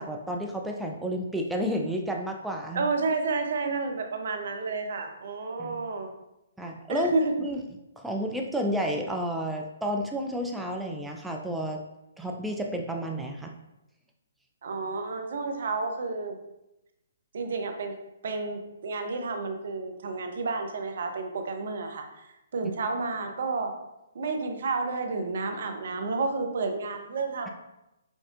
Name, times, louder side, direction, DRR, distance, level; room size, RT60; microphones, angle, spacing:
voice 1, 0.0-2.9 5.6-5.7 6.6-7.1 7.4-7.6 8.0-11.8 12.2-13.5, equal, 5° right, 1 dB, 0.4 m, -31 dB
voice 2, 2.7-6.1 6.9-7.3 14.6-16.4 17.3-17.9 18.2-22.3 22.5-23.7 24.1-27.5, right 3 dB, 55° right, 5 dB, 0.7 m, -30 dB
5.3 x 3.6 x 2.4 m, 0.92 s
figure-of-eight pair, 130°, 0 cm